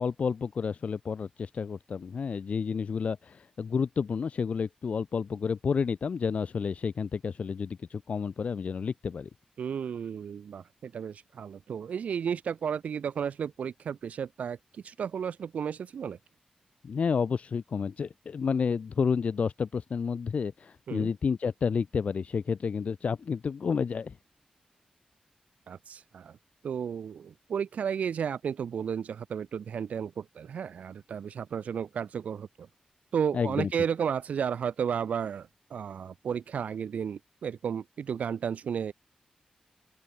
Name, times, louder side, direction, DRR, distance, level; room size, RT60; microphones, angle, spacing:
voice 1, 0.0-9.3 16.8-24.2 33.3-33.7, left 6 dB, 70° left, 0.5 m, -30 dB
voice 2, 9.6-16.2 20.9-21.1 25.7-26.4 26.6-32.7 33.1-38.9, right 7 dB, 90° right, 1.0 m, -33 dB
open air
cardioid pair, 60°, 2 cm